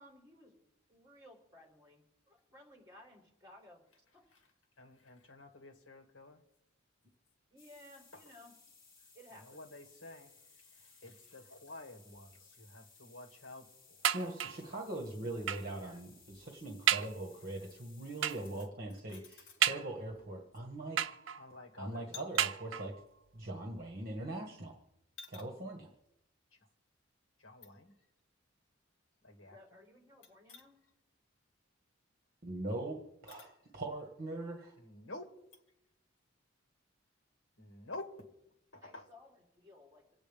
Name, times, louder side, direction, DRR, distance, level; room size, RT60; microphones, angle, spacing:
voice 1, 0.0-3.8 4.1-4.3 7.5-8.6 9.1-9.7 15.8-16.1 29.4-30.8 38.8-40.1, left 1 dB, 20° right, -1 dB, 3.7 m, -58 dB
voice 2, 4.8-6.4 9.4-10.3 11.0-13.7 21.4-22.0 25.2-25.4 27.4-27.9 29.2-29.6 30.5-30.6 33.4-33.5 34.8-35.3 37.6-38.3 38.7-39.0, left 2 dB, 70° left, 2 dB, 2.2 m, -50 dB
sound 1, 7.6-18.7, left 4 dB, 45° left, 2.6 m, -62 dB
sound 2, 14.0-14.7 15.5-15.8 16.3-16.4 16.9-17.2 18.2-18.6 19.6-20.2 21.0-21.6 22.4-23.1 23.9-24.0 24.3-24.4, right 10 dB, 70° right, 0.6 m, -33 dB
voice 3, 14.1-21.0 21.8-22.9 23.3-24.8 25.3-25.9 32.4-34.7, right 2 dB, 45° right, 2 dB, 1.5 m, -41 dB
26.5 x 8.9 x 3.5 m, 0.89 s
head